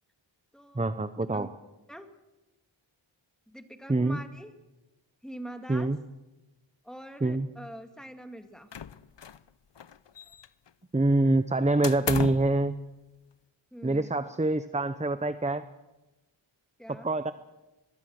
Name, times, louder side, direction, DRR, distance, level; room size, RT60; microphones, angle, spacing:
voice 1, 0.7-1.5 3.9-4.2 5.7-6.0 7.2-7.5 10.9-12.8 13.8-15.6 16.9-17.3, right 2 dB, 15° right, 12 dB, 0.8 m, -25 dB
voice 2, 3.5-4.5 5.2-5.9 6.8-8.7 13.7-14.1 16.8-17.1, right 1 dB, ahead, 6 dB, 2.3 m, -44 dB
sound 1, 8.7-9.5 9.8-10.7 11.8-12.6, left 8 dB, 60° left, 0.8 m, -35 dB
23.5 x 21.5 x 6.6 m, 1.1 s
wide cardioid pair, 65°, 48 cm